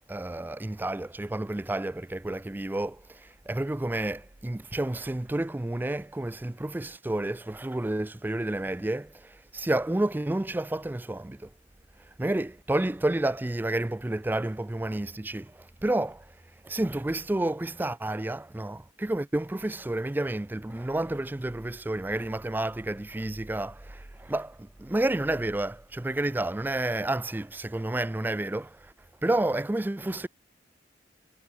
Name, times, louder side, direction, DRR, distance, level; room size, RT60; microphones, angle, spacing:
voice 1, 0.1-11.5 12.2-16.3 16.6-28.9 29.2-30.3, right 1 dB, 10° right, 0.3 m, -30 dB
head